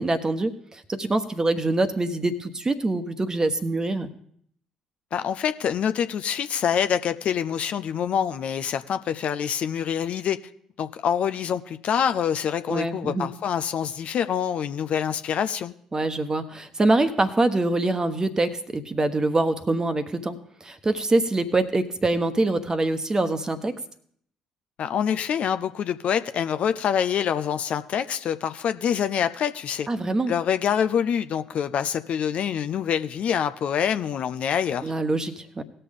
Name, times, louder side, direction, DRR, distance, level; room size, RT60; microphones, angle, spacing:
voice 1, 0.0-4.1 12.7-13.3 15.9-23.7 29.9-30.3 34.8-35.6, right 2 dB, 25° right, 1.2 m, -24 dB
voice 2, 5.1-10.4 10.8-15.7 24.8-29.9 30.3-34.9, left 8 dB, 50° left, 0.5 m, -26 dB
19.0 x 6.7 x 3.7 m
figure-of-eight pair, 45°, 3 cm